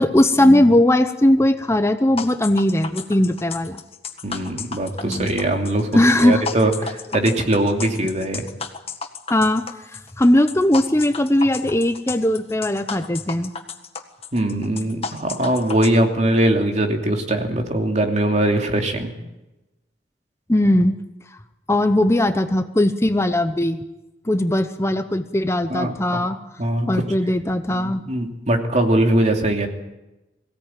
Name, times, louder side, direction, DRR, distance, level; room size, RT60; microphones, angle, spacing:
voice 1, 0.0-3.8 5.0-5.3 5.9-6.4 9.3-13.5 20.5-20.9 21.7-23.8 24.2-26.4 26.9-28.0, left 1 dB, 15° left, 8 dB, 0.8 m, -19 dB
sound 1, 2.2-15.9, left 5 dB, 35° left, 1.7 m, -33 dB
voice 2, 4.2-5.9 6.2-8.5 14.3-19.1 25.7-26.3 26.6-27.0 28.1-29.7, right 1 dB, 40° right, 3 dB, 2.8 m, -21 dB
22.5 x 17.0 x 9.1 m, 1.0 s
head